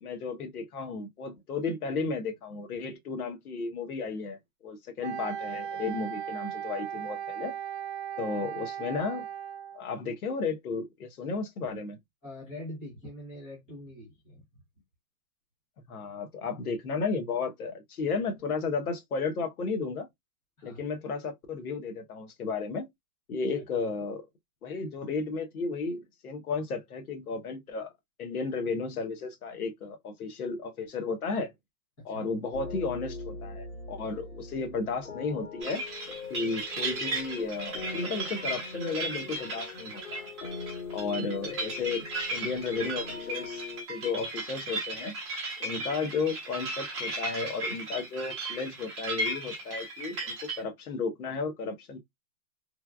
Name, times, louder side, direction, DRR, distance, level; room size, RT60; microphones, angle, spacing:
voice 1, 0.0-7.5 8.2-9.2 9.7-12.0 15.9-20.1 20.6-22.9 23.3-24.2 24.6-27.9 28.2-31.5 32.0-35.8 36.3-40.3 40.9-42.0 42.3-43.6 43.9-45.1 45.6-52.0, left 4 dB, 85° left, 1.0 m, -33 dB
Wind instrument woodwind instrument, 5.0-9.8, right 9 dB, 50° right, 0.5 m, -37 dB
voice 2, 12.2-14.4 20.6-20.8 23.5-23.6 32.0-32.3, left 1 dB, 10° left, 0.6 m, -44 dB
sound 1, 32.5-43.8, left 4 dB, 65° left, 1.8 m, -42 dB
sound 2, 35.6-50.6, right 2 dB, 20° right, 0.9 m, -36 dB
3.2 x 2.3 x 2.3 m
hypercardioid pair, 175°, 43 cm